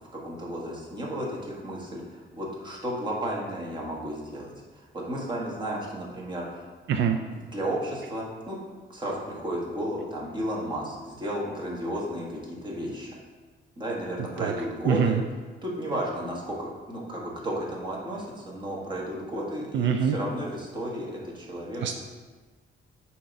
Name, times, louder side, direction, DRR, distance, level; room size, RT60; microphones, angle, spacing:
voice 1, 0.0-6.7 7.3-8.6 8.9-13.1 13.8-15.2 15.6-22.0, right 1 dB, 25° right, -3 dB, 1.3 m, -33 dB
voice 2, 6.9-7.2 14.4-14.5 14.9-15.2 19.7-20.2 21.8-22.0, right 7 dB, 70° right, 5 dB, 0.4 m, -24 dB
7.4 x 2.9 x 5.2 m, 1.4 s
cardioid pair, 145°, 19 cm